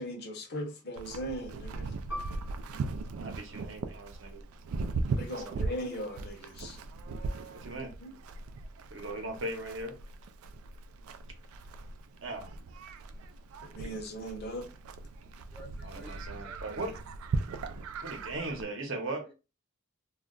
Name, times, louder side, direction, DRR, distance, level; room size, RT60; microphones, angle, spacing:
voice 1, 0.0-1.9 5.2-6.8 8.0-8.1 13.6-14.7, equal, 50° left, 0.7 m, -39 dB
Livestock farm animals working animals, 1.0-18.6, right 3 dB, 85° right, 0.3 m, -39 dB
Piano, 2.1-7.1 7.5-7.6 8.4-8.8, equal, 85° left, 0.8 m, -48 dB
voice 2, 3.2-4.4 5.3-5.6 7.5-7.9 8.9-10.0 12.2-12.5 15.8-16.9 18.0-19.3, right 2 dB, 65° right, 0.8 m, -38 dB
voice 3, 15.5-16.8, equal, 5° right, 0.3 m, -52 dB
2.3 x 2.1 x 3.7 m
head